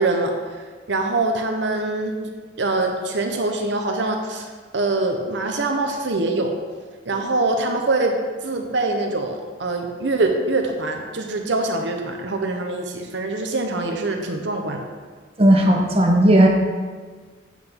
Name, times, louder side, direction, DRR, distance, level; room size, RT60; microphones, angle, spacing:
voice 1, 0.0-2.1 2.6-4.5 4.7-6.5 7.0-8.1 8.4-14.8, right 2 dB, 70° right, 3 dB, 0.8 m, -24 dB
voice 2, 15.4-16.5, right 1 dB, 30° right, 1 dB, 1.0 m, -15 dB
8.0 x 7.3 x 3.6 m, 1.5 s
head